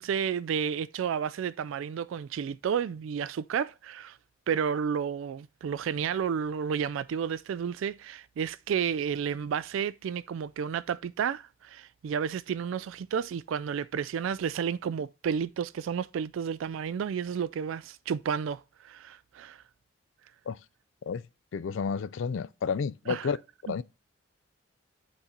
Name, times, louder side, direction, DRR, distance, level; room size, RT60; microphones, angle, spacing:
voice 1, 0.0-4.2 4.5-19.6 23.1-23.3, right 7 dB, 75° right, 0.3 m, -31 dB
voice 2, 21.5-23.4 23.6-23.8, left 6 dB, 70° left, 0.4 m, -31 dB
8.3 x 4.2 x 5.0 m
head